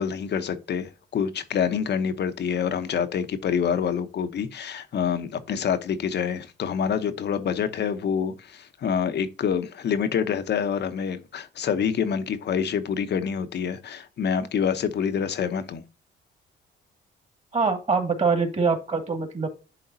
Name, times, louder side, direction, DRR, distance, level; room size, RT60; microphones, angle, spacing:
voice 1, 0.0-15.8, left 7 dB, 60° left, 1.0 m, -27 dB
voice 2, 17.5-19.5, right 4 dB, 35° right, 2.2 m, -24 dB
11.0 x 3.8 x 2.7 m
cardioid pair, 90°, 20 cm